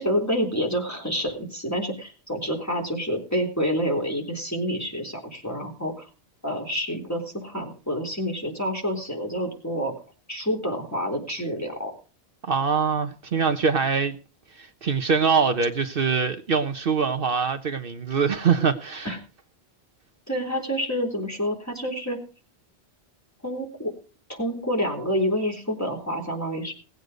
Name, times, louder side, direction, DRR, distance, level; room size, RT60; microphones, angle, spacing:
voice 1, 0.0-6.1 6.4-9.9 10.3-11.9 19.0-19.2 20.3-22.2 23.4-23.9 24.3-26.7, equal, 15° left, 0 dB, 3.9 m, -28 dB
voice 2, 12.4-14.2 14.6-19.1, right 5 dB, 60° right, 6 dB, 1.1 m, -23 dB
19.0 x 8.2 x 5.1 m, 0.36 s
omnidirectional pair, 1.1 m